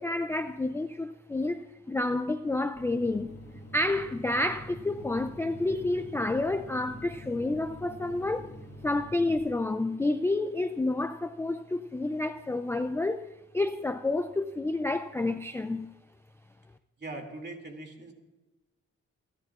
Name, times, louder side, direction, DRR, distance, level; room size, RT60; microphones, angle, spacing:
voice 1, 0.0-3.3 3.7-8.5 8.8-13.3 13.5-15.9, left 2 dB, 10° left, 0.3 m, -29 dB
sound 1, 2.7-9.4, equal, 40° left, 2.1 m, -46 dB
voice 2, 17.0-18.1, right 2 dB, 35° right, 2.5 m, -41 dB
28.5 x 11.5 x 2.4 m
wide cardioid pair, 145°, 29 cm